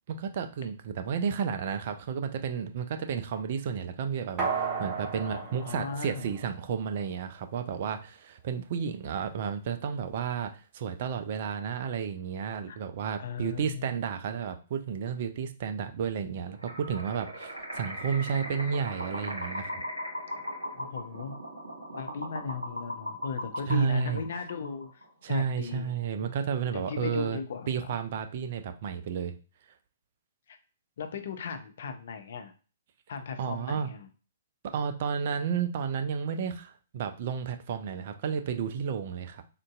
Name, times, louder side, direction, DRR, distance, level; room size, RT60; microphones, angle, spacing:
voice 1, 0.1-19.8 23.7-24.2 25.2-27.4 27.7-29.3 33.4-33.9 34.6-39.4, right 7 dB, 50° right, 7 dB, 0.5 m, -32 dB
sound 1, 4.4-6.9 7.3-7.4, right 5 dB, 30° right, 1.1 m, -34 dB
voice 2, 5.2-6.3 12.7-12.8 13.2-14.0 20.7-21.4 21.9-25.9 26.2-26.3 26.7-27.9 30.5-30.6 31.0-32.5 33.1-34.1, left 6 dB, 60° left, 8 dB, 0.5 m, -37 dB
sound 2, 16.6-25.1, equal, 90° right, 1.5 m, -38 dB
3.7 x 2.6 x 2.3 m, 0.35 s
figure-of-eight pair, 120°, 0 cm